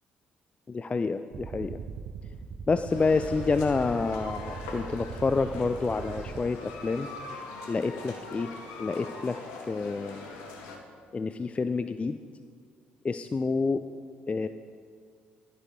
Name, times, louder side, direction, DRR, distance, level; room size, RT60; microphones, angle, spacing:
voice 1, 0.7-1.8 2.7-7.1 7.7-8.5 8.8-9.4 9.7-10.3 11.1-12.2 13.0-13.8 14.3-14.5, left 4 dB, 25° left, 10 dB, 0.3 m, -28 dB
sound 1, 1.3-6.5, right 5 dB, 45° right, 0.6 m, -40 dB
sound 2, 2.9-10.8, left 3 dB, 65° left, 1.1 m, -42 dB
11.0 x 11.0 x 3.9 m, 2.1 s
figure-of-eight pair, 45°, 5 cm